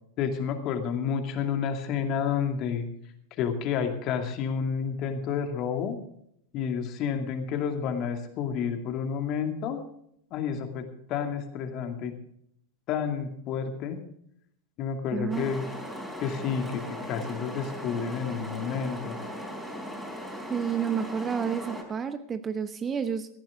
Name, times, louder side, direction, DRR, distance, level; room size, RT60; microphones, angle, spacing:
voice 1, 0.2-2.9 3.4-6.0 6.5-9.8 10.3-12.1 12.9-14.0 14.8-15.7 16.2-19.2, left 7 dB, 40° left, 6 dB, 2.3 m, -30 dB
voice 2, 15.1-15.5 20.5-23.3, right 7 dB, 20° right, 12 dB, 0.9 m, -30 dB
sound 1, 15.3-21.8, equal, ahead, 4.1 m, -38 dB
17.5 x 14.5 x 3.6 m, 0.70 s
figure-of-eight pair, 90°, 0 cm